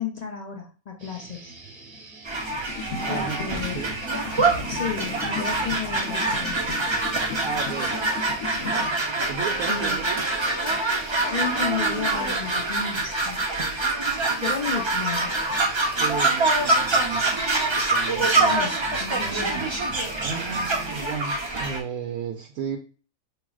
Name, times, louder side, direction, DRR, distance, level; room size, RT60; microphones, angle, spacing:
voice 1, 0.0-1.5 3.1-3.8 4.7-6.6 9.7-10.1 11.2-13.5 14.4-15.4 18.2-19.6, left 6 dB, 45° left, 1 dB, 0.5 m, -33 dB
sound 1, 1.0-20.9, right 3 dB, 45° right, 1.1 m, -45 dB
sound 2, 2.3-21.8, right 2 dB, 30° right, 0.6 m, -25 dB
sound 3, 2.7-8.8, left 5 dB, 75° left, 1.1 m, -36 dB
voice 2, 3.0-3.4 3.7-3.9 7.4-8.0 9.2-10.2 15.9-17.2 17.8-18.6 20.2-22.8, right 6 dB, 90° right, 2 dB, 1.1 m, -34 dB
6.0 x 3.1 x 2.3 m, 0.39 s
omnidirectional pair, 1.4 m